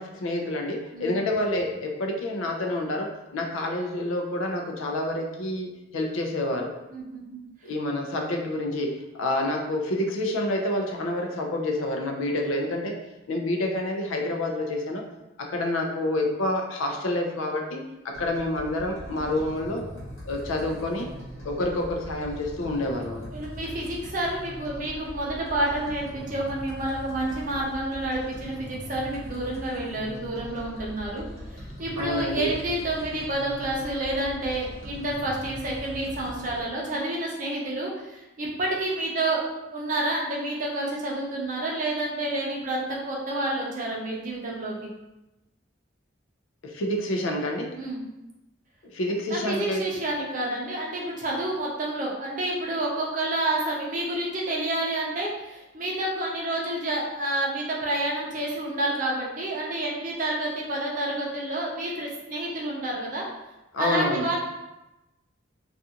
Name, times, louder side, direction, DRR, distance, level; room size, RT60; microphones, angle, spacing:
voice 1, 0.0-6.7 7.6-8.9 9.2-12.9 13.3-15.0 15.4-19.9 20.2-21.1 21.4-23.3 32.0-32.5 46.6-47.7 48.9-49.8 63.7-64.3, left 1 dB, 90° left, 2 dB, 0.4 m, -28 dB
voice 2, 6.9-7.4 23.3-31.2 31.5-39.4 39.7-44.8 47.7-48.0 49.1-49.2 49.5-63.2 63.8-64.4, right 1 dB, 40° right, -3 dB, 0.5 m, -29 dB
sound 1, 18.1-36.6, equal, 70° left, 1.0 m, -41 dB
2.4 x 2.4 x 2.7 m, 0.98 s
head